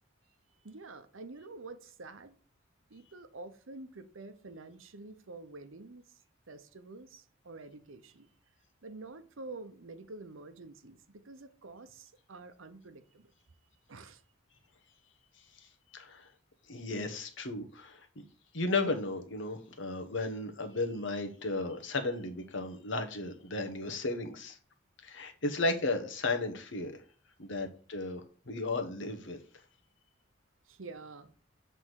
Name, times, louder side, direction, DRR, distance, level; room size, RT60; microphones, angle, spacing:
voice 1, 0.6-2.4 2.9-6.2 6.5-8.3 8.8-13.3 13.9-14.2 30.6-31.3, right 3 dB, 80° right, 0.8 m, -48 dB
voice 2, 15.4-15.7 15.9-16.3 16.7-18.2 18.5-24.6 25.0-27.0 27.4-28.2 28.5-29.4, left 2 dB, 70° left, 1.2 m, -34 dB
7.8 x 3.6 x 6.3 m
head